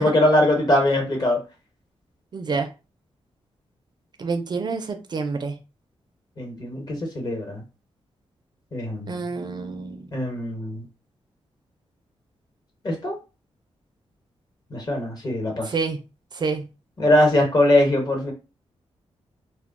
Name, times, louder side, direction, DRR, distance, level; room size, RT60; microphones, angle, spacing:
voice 1, 0.0-1.4 6.4-7.6 8.7-9.2 10.1-10.8 12.8-13.1 14.7-15.7 17.0-18.3, left 1 dB, 40° left, 1 dB, 1.0 m, -21 dB
voice 2, 2.3-2.7 4.2-5.6 9.1-10.1 15.6-16.0 16.3-16.6, right 4 dB, 45° right, 6 dB, 0.4 m, -28 dB
2.2 x 2.2 x 3.5 m, 0.31 s
wide cardioid pair, 125°, 11 cm